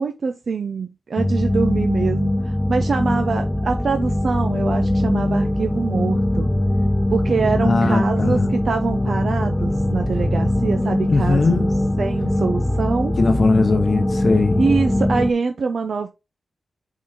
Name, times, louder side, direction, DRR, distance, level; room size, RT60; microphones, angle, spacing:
voice 1, 0.0-6.5 7.1-11.7 12.0-13.1 14.6-16.1, right 5 dB, 60° right, 0.7 m, -24 dB
sound 1, 1.2-15.3, left 1 dB, 10° left, 0.4 m, -21 dB
voice 2, 7.6-8.5 11.1-11.7 13.2-14.7, left 3 dB, 50° left, 0.8 m, -19 dB
5.5 x 3.9 x 5.0 m
wide cardioid pair, 135°, 0 cm